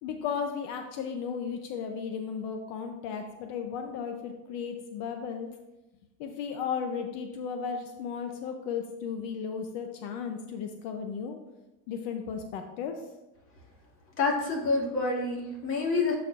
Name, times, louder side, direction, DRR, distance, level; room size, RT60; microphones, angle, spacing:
voice 1, 0.0-5.5 6.2-11.4 11.9-13.0, left 6 dB, 75° left, 5 dB, 0.7 m, -35 dB
voice 2, 14.2-16.1, left 3 dB, 40° left, -2 dB, 2.1 m, -27 dB
12.0 x 4.3 x 2.5 m, 1.0 s
cardioid pair, 130°, 33 cm